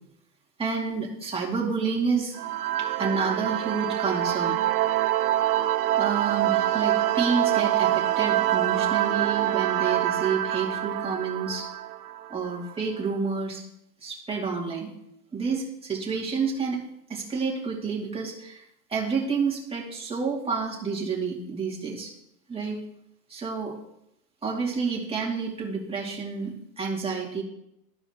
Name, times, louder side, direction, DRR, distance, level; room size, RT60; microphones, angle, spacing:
voice 1, 0.6-2.4 2.8-4.6 6.0-11.7 12.3-13.6 14.0-14.9 15.3-16.8 17.1-22.1 22.5-22.8 23.3-23.8 24.4-27.4, right 5 dB, 10° right, -3 dB, 2.3 m, -29 dB
sound 1, 2.3-12.7, right 13 dB, 60° right, 0.6 m, -25 dB
14.0 x 4.8 x 2.8 m, 0.79 s
hypercardioid pair, 130°, 50 cm